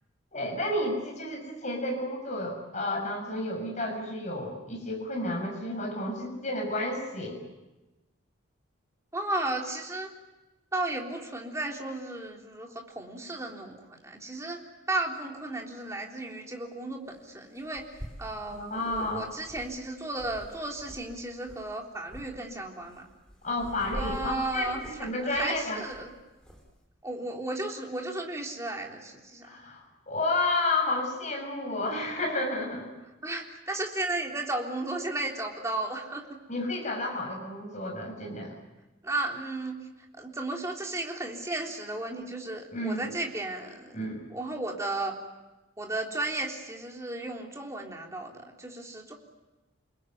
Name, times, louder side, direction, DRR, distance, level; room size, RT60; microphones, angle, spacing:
voice 1, 0.3-7.4 18.5-19.2 23.4-25.8 29.4-32.9 36.5-38.5 42.7-43.1 43.9-44.2, left 2 dB, 35° left, 1 dB, 6.9 m, -31 dB
voice 2, 9.1-10.1 10.7-14.6 14.9-23.0 23.9-24.8 25.2-26.1 27.0-29.6 33.2-36.3 39.0-39.8 40.2-44.0 44.3-45.1 45.8-49.1, right 2 dB, 15° right, 0 dB, 3.6 m, -34 dB
sound 1, 15.2-15.3 17.1-17.2 17.6-21.1 21.4-21.7 22.1-22.3 22.8-26.7, equal, 5° left, 4.8 m, -45 dB
29.5 x 21.0 x 9.4 m, 1.1 s
head